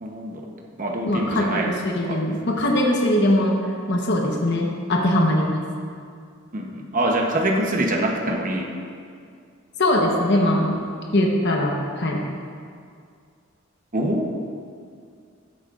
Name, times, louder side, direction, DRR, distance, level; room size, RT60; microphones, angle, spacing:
voice 1, 0.0-0.5 0.8-1.7 2.1-2.2 6.5-8.7 13.9-14.3, right 1 dB, 40° right, 0 dB, 0.9 m, -24 dB
voice 2, 1.1-3.6 3.9-5.6 9.8-10.8 11.1-12.2, left 1 dB, 55° left, 0 dB, 1.0 m, -21 dB
13.5 x 8.3 x 2.5 m, 2.2 s
head